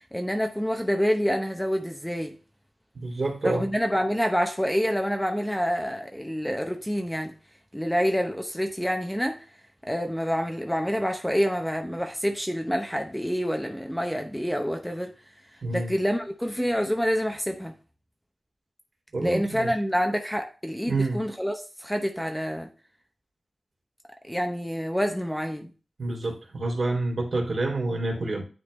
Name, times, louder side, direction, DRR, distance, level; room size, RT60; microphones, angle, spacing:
voice 1, 0.1-2.3 3.4-7.3 7.7-9.4 9.8-15.1 15.7-17.7 19.2-22.7 24.3-25.7, equal, 5° left, 0.8 m, -27 dB
voice 2, 2.9-3.6 15.6-15.9 19.1-19.7 20.9-21.2 26.0-28.4, right 2 dB, 55° right, 2.7 m, -28 dB
9.6 x 3.9 x 3.1 m
wide cardioid pair, 105°, 0 cm